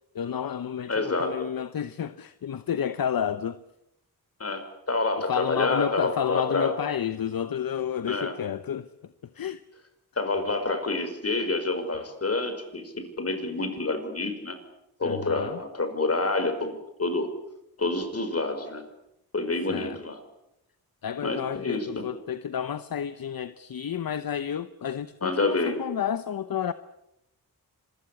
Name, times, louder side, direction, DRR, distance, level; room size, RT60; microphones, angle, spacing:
voice 1, 0.1-3.6 5.3-9.6 15.0-15.6 19.7-20.0 21.0-26.7, left 8 dB, 65° left, 1.0 m, -31 dB
voice 2, 0.9-1.3 4.4-4.6 4.9-6.7 8.1-8.3 10.2-14.6 15.0-16.7 17.0-17.3 17.8-18.8 19.3-20.2 21.2-21.9 25.2-25.8, left 3 dB, 40° left, 5.2 m, -28 dB
26.5 x 22.0 x 8.6 m
wide cardioid pair, 105°, 38 cm